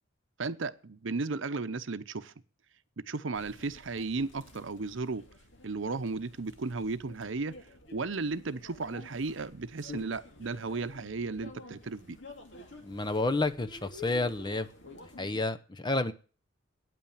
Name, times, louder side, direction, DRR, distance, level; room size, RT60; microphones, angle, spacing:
voice 1, 0.4-2.3 3.0-5.3 5.6-12.2, right 3 dB, 70° right, 0.7 m, -35 dB
sound 1, 3.3-15.4, left 2 dB, 60° left, 2.3 m, -50 dB
voice 2, 12.8-14.7 15.2-16.1, left 2 dB, 20° left, 0.7 m, -30 dB
9.3 x 8.8 x 8.8 m
head